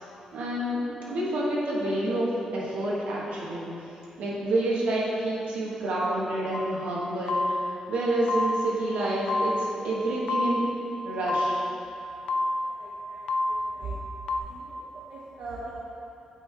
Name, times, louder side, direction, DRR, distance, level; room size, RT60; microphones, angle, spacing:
voice 1, 0.3-3.7 4.2-10.7 11.0-11.6, right 1 dB, 80° right, -5 dB, 1.4 m, -28 dB
sound 1, 6.5-6.9 7.3-7.9 8.3-8.9 9.3-9.9 10.3-10.9 11.3-11.9 12.3-12.9 13.3-13.8 14.3-14.4, left 2 dB, 45° left, 0.3 m, -28 dB
voice 2, 12.6-14.0 14.3-15.7, right 3 dB, 50° right, -5 dB, 0.7 m, -41 dB
8.7 x 3.5 x 4.6 m, 2.8 s
wide cardioid pair, 175°, 2 cm